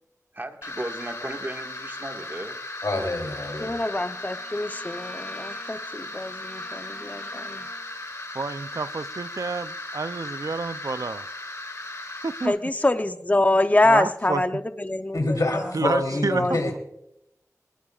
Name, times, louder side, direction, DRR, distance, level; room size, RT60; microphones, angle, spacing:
voice 1, 0.3-2.6, right 1 dB, 35° right, 1.7 m, -35 dB
sound 1, 0.6-12.5, left 2 dB, 55° left, 2.2 m, -37 dB
voice 2, 2.8-3.7 15.1-16.8, left 2 dB, 90° left, 3.1 m, -26 dB
Bowed string instrument, 3.0-8.0, equal, 10° left, 3.6 m, -48 dB
voice 3, 3.6-7.6 12.4-15.7 16.3-16.6, left 2 dB, 25° left, 0.7 m, -25 dB
voice 4, 8.3-11.3 12.2-12.6 13.8-14.6 15.7-16.8, right 3 dB, 80° right, 0.5 m, -29 dB
21.0 x 20.5 x 2.4 m
wide cardioid pair, 50°, 6 cm